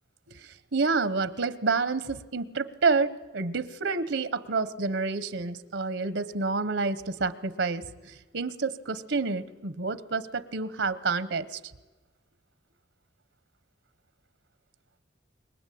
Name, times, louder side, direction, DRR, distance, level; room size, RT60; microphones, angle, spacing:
voice 1, 0.3-11.6, right 4 dB, 80° right, 15 dB, 1.0 m, -29 dB
26.5 x 22.5 x 8.5 m, 1.2 s
head